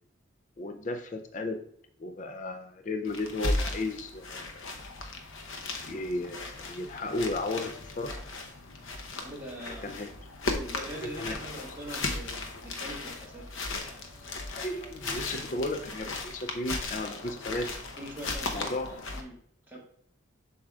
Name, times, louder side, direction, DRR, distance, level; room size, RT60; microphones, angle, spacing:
voice 1, 0.6-1.6 2.0-4.7 5.9-8.1 9.8-10.1 11.0-11.4 14.5-17.7 18.5-18.9, left 2 dB, 40° left, 6 dB, 0.4 m, -34 dB
sound 1, 3.0-19.2, left 2 dB, 80° left, 0.8 m, -36 dB
voice 2, 9.2-10.1 10.5-13.9 18.0-18.7 19.1-19.4 19.6-19.8, right 1 dB, 10° right, -5 dB, 1.6 m, -43 dB
7.5 x 6.2 x 2.4 m, 0.64 s
head